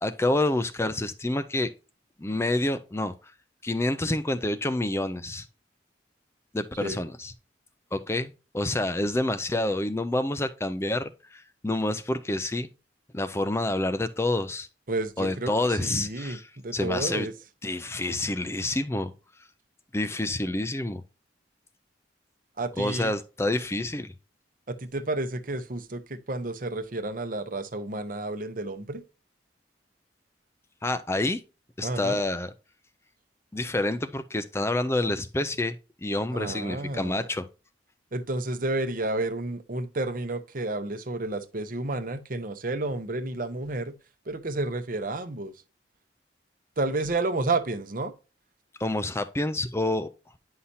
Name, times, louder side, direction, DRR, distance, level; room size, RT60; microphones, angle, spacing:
voice 1, 0.0-1.7 2.2-3.1 3.6-5.5 6.5-7.3 7.9-12.7 13.1-14.7 15.2-16.5 16.7-17.3 17.6-19.1 19.9-21.0 22.8-24.1 30.8-31.4 31.8-32.5 33.5-35.7 36.0-37.5 48.8-50.1, left 2 dB, 15° left, 0.4 m, -28 dB
voice 2, 14.9-16.4 16.6-17.3 22.6-23.1 24.7-29.0 31.8-32.2 36.3-37.3 38.1-43.9 44.3-45.5 46.8-48.1, right 2 dB, 50° right, 0.8 m, -31 dB
9.9 x 5.7 x 2.7 m
head